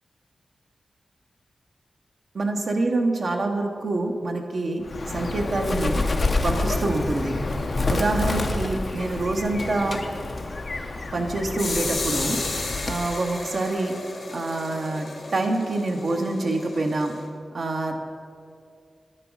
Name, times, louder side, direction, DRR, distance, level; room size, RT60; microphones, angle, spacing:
voice 1, 2.3-4.8 5.1-6.0 6.4-7.3 7.9-10.0 11.1-12.4 12.9-13.9 14.3-17.1 17.5-18.0, right 2 dB, 60° right, 2 dB, 0.9 m, -26 dB
Bird, 4.8-13.1, left 2 dB, 50° left, 0.6 m, -28 dB
sound 1, 11.6-17.2, left 3 dB, 70° left, 1.3 m, -33 dB
10.5 x 5.9 x 4.7 m, 2.4 s
wide cardioid pair, 95°, 0 cm